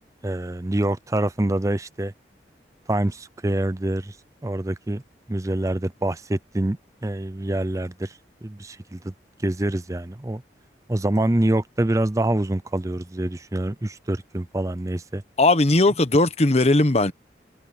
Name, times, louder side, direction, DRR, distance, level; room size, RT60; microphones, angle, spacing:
voice 1, 0.2-2.1 2.9-4.2 4.4-5.0 5.3-8.1 8.4-9.1 9.4-10.4 10.9-15.2, right 1 dB, 20° right, 0.6 m, -25 dB
voice 2, 15.4-17.1, left 2 dB, 35° left, 1.1 m, -18 dB
head